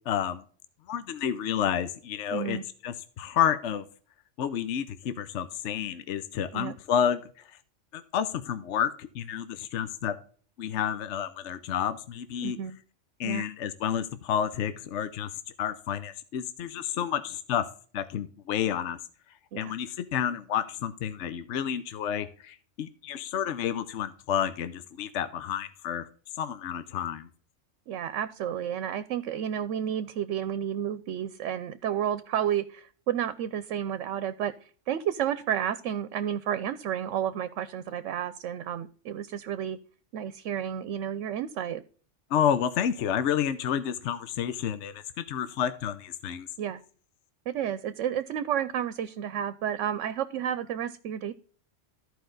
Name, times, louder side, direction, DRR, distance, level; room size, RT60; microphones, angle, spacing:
voice 1, 0.1-0.4 0.9-2.6 2.8-3.9 4.4-7.6 7.9-10.2 10.6-12.6 13.2-15.3 15.6-17.7 17.9-19.0 19.6-26.1 26.3-27.3 42.3-46.5, left 9 dB, 75° left, 12 dB, 1.0 m, -30 dB
voice 2, 2.3-2.6 6.5-6.7 12.4-12.8 13.2-13.4 19.5-19.7 27.9-34.5 34.9-39.8 40.1-41.8 46.6-46.8 47.5-51.3, right 9 dB, 80° right, 14 dB, 0.9 m, -31 dB
13.5 x 4.9 x 3.8 m, 0.43 s
omnidirectional pair, 1.2 m